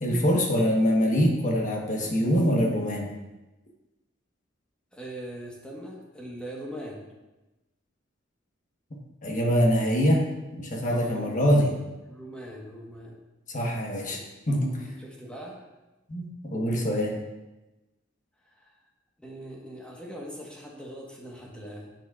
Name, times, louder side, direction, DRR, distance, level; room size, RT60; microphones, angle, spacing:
voice 1, 0.0-3.1 9.2-10.2 10.5-11.7 13.5-14.2 14.5-14.9 16.1-17.2, equal, 40° left, 1 dB, 1.2 m, -24 dB
voice 2, 4.9-7.1 10.9-11.6 12.1-13.2 14.8-15.7 18.4-18.7 19.2-21.9, equal, 5° left, -3 dB, 1.3 m, -41 dB
9.7 x 8.2 x 2.5 m, 1.0 s
head